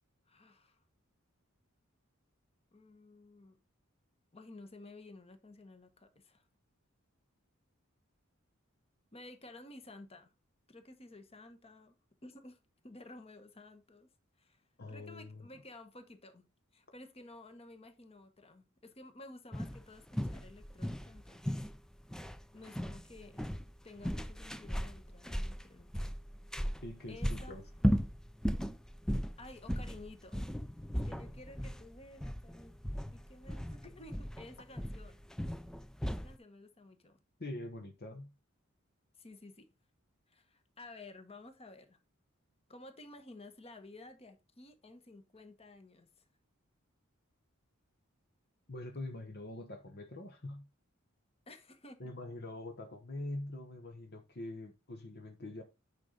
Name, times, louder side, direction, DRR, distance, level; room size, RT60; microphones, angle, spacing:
voice 1, 0.3-0.8 2.7-3.6 4.3-6.4 9.1-10.3 10.7-11.9 12.2-12.6 12.8-14.1 14.4-14.6 14.9-16.5 16.7-21.7 22.5-23.5 23.8-26.1 27.1-27.7 29.4-30.5 31.0-32.7 33.1-35.3 36.1-37.2 39.2-39.7 40.3-42.0 42.7-46.1 51.5-52.0, left 2 dB, 30° left, 1.3 m, -53 dB
voice 2, 14.8-15.5 26.8-27.6 37.4-38.3 48.7-50.7 52.0-55.6, left 2 dB, 50° left, 1.1 m, -44 dB
sound 1, 19.5-36.4, equal, 5° left, 0.4 m, -37 dB
9.5 x 5.3 x 3.9 m
head